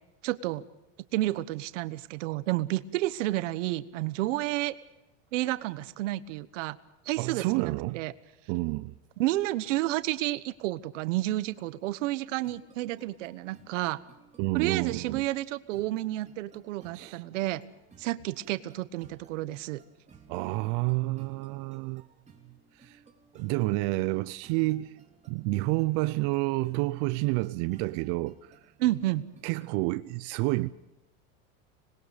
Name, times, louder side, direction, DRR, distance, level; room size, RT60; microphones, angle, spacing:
voice 1, 0.2-0.6 1.1-4.8 5.3-6.8 7.0-8.1 9.2-14.0 14.5-17.6 18.0-19.8 28.8-29.2, right 16 dB, 90° right, 1.3 m, -30 dB
voice 2, 7.2-8.0 8.5-9.0 14.4-15.2 16.9-17.2 20.3-22.0 22.8-23.0 23.3-24.9 25.3-28.6 29.4-30.7, right 21 dB, 65° right, 0.7 m, -29 dB
sound 1, 12.4-29.9, right 6 dB, 20° right, 3.3 m, -59 dB
25.5 x 20.5 x 5.2 m
supercardioid pair, 130°, 36 cm